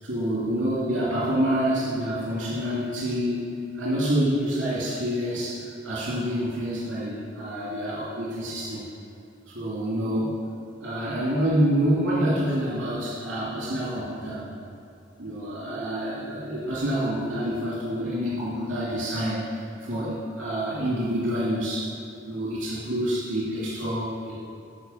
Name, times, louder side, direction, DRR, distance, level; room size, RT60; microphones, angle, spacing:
voice 1, 0.0-8.8 9.5-10.4 10.8-14.4 15.2-21.9 22.3-24.4, equal, 80° right, -9 dB, 2.7 m, -27 dB
12.0 x 4.8 x 7.0 m, 2.7 s
head